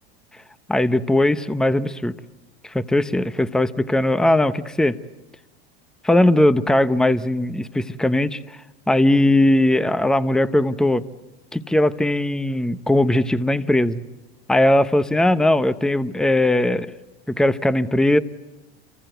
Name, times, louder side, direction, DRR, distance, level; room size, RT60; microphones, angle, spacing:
voice 1, 0.7-2.1 2.6-3.2 3.5-5.0 6.0-8.4 8.9-11.0 11.5-14.0 14.5-16.9 17.3-18.2, left 1 dB, ahead, 13 dB, 0.9 m, -19 dB
28.5 x 24.5 x 8.0 m, 1.1 s
hypercardioid pair, 105°, 32 cm